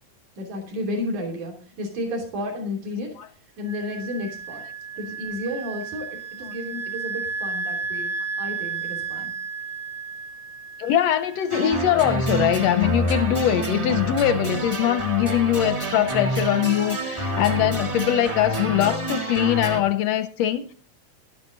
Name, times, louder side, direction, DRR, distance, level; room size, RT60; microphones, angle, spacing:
voice 1, 0.4-3.1 3.6-4.6 5.0-9.3, left 1 dB, 80° right, 4.5 m, -32 dB
Wind instrument woodwind instrument, 3.6-11.9, right 5 dB, 55° right, 1.2 m, -33 dB
voice 2, 10.8-20.7, left 11 dB, 80° left, 1.5 m, -22 dB
sound 1, 11.5-19.8, equal, 35° right, 0.5 m, -27 dB
12.0 x 11.5 x 3.8 m
omnidirectional pair, 3.4 m